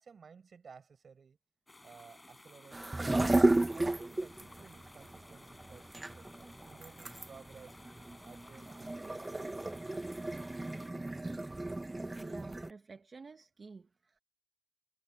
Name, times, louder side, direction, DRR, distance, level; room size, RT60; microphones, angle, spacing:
voice 1, 0.0-1.4 1.8-3.3 3.7-7.8 8.2-9.7, right 6 dB, 65° right, 6.6 m, -56 dB
sound 1, 1.7-10.9, left 2 dB, 20° left, 6.9 m, -57 dB
sound 2, 2.7-12.7, right 2 dB, 20° right, 0.7 m, -33 dB
voice 2, 12.1-14.2, right 4 dB, 45° right, 1.0 m, -51 dB
wide cardioid pair, 130°, 0 cm